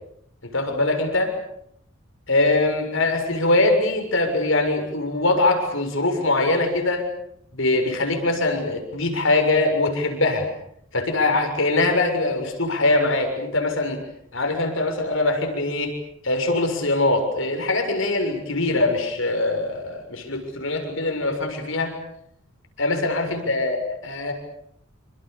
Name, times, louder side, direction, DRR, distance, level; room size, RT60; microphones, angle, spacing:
voice 1, 0.5-1.3 2.3-7.0 7.5-10.5 10.9-14.0 14.3-15.9 16.2-21.9 22.8-24.3, left 2 dB, 70° left, 5 dB, 6.9 m, -22 dB
29.0 x 26.5 x 6.9 m, 0.71 s
head